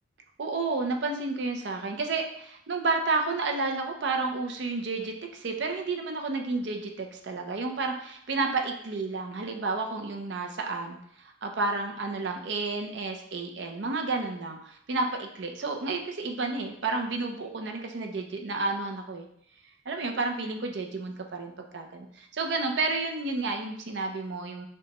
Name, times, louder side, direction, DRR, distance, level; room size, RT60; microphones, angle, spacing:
voice 1, 0.4-19.3 19.9-24.7, right 3 dB, 65° right, 3 dB, 0.5 m, -31 dB
6.7 x 2.2 x 2.9 m, 0.68 s
head